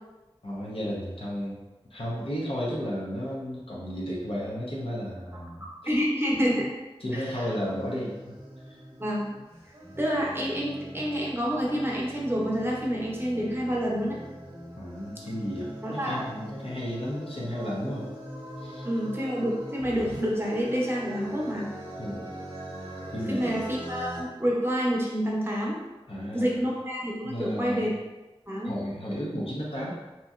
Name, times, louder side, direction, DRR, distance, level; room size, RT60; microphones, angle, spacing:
voice 1, 0.4-1.6 1.9-5.6 7.0-8.3 8.7-8.8 14.7-18.1 18.6-18.9 22.0-22.3 23.1-23.5 26.1-26.5 27.2-27.8 28.6-29.9, equal, 70° left, -5 dB, 0.8 m, -33 dB
voice 2, 5.9-6.7 7.1-7.5 9.0-9.3 10.0-14.2 15.8-16.4 18.8-21.7 23.3-25.8 26.3-28.0 28.5-28.7, equal, 25° right, -4 dB, 0.7 m, -28 dB
sound 1, 7.5-24.2, right 1 dB, 60° right, 0.8 m, -42 dB
2.9 x 2.7 x 2.4 m, 1.1 s
wide cardioid pair, 50°, 10 cm